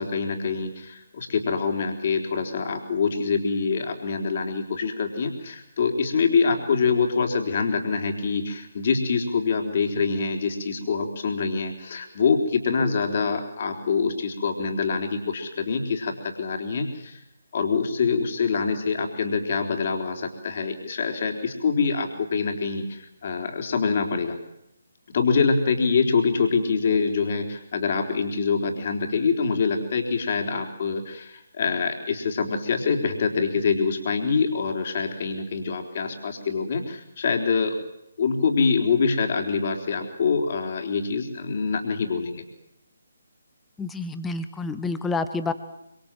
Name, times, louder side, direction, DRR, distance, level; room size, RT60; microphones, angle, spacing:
voice 1, 0.0-17.2 17.5-24.4 25.1-37.7 38.2-42.4, left 5 dB, 40° left, 4 dB, 3.9 m, -25 dB
voice 2, 43.8-45.5, left 3 dB, 5° left, 10 dB, 1.4 m, -28 dB
26.0 x 25.0 x 7.7 m, 0.84 s
figure-of-eight pair, 145°, 0 cm